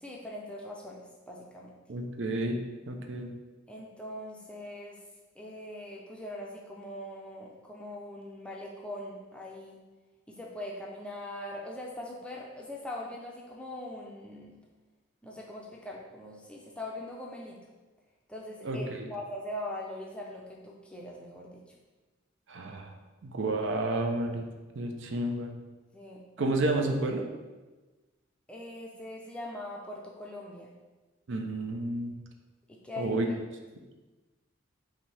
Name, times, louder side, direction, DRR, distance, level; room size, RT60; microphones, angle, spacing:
voice 1, 0.0-1.7 3.7-5.0 5.3-9.8 10.3-14.6 15.2-17.6 18.3-21.7 25.9-26.5 28.5-30.7 32.7-33.4, left 1 dB, 5° left, -2 dB, 0.5 m, -41 dB
voice 2, 1.9-3.3 18.6-19.1 22.5-22.9 23.2-24.5 24.8-25.5 26.4-27.2 31.3-32.1 33.0-33.3, right 2 dB, 65° right, 4 dB, 0.5 m, -31 dB
5.6 x 2.7 x 3.3 m, 1.2 s
head